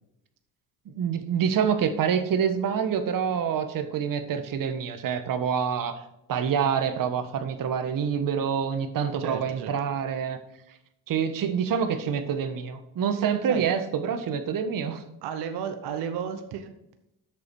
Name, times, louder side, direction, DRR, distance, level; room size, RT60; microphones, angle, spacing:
voice 1, 0.8-6.0 6.3-10.4 11.1-15.0, right 7 dB, 55° right, 8 dB, 1.3 m, -26 dB
voice 2, 9.2-9.7 13.5-13.7 15.2-16.7, right 8 dB, 75° right, 8 dB, 1.1 m, -33 dB
8.3 x 6.7 x 4.7 m, 0.85 s
cardioid pair, 85°, 39 cm